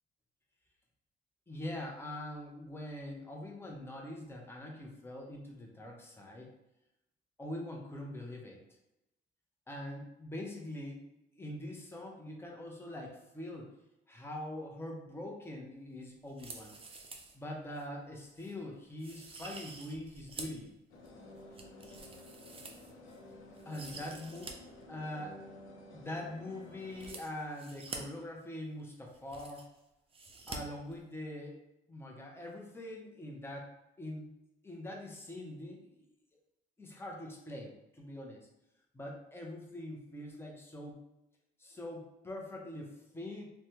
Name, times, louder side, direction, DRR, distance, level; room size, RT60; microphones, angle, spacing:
voice 1, 1.5-6.5 7.4-8.6 9.7-11.0 11.3-13.7 14.1-16.7 17.3-20.7 23.7-24.5 24.9-25.5 25.9-29.7 30.5-31.6 31.9-34.3 34.6-36.1 36.8-38.5 38.9-41.0 41.6-43.5, left 1 dB, 10° left, 0 dB, 0.7 m, -43 dB
sound 1, 16.3-17.4 17.7-17.8 18.4-18.5 19.0-20.6 21.1-23.2 23.6-24.5 24.8-24.9 26.9-28.0 28.8-28.9 29.1-29.8 30.1-30.6 30.9-31.0, right 3 dB, 30° right, 0.5 m, -48 dB
sound 2, 20.9-27.1, left 1 dB, 85° left, 0.6 m, -52 dB
3.2 x 2.2 x 2.8 m, 0.91 s
cardioid pair, 90°, 20 cm